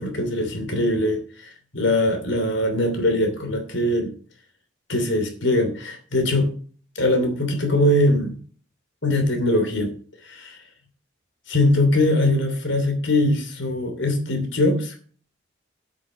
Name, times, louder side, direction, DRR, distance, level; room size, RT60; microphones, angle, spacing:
voice 1, 0.0-4.1 4.9-6.5 6.9-8.4 9.0-9.9 10.2-10.6 11.5-14.9, left 1 dB, 75° left, 6 dB, 2.9 m, -22 dB
8.3 x 7.5 x 8.0 m, 0.43 s
head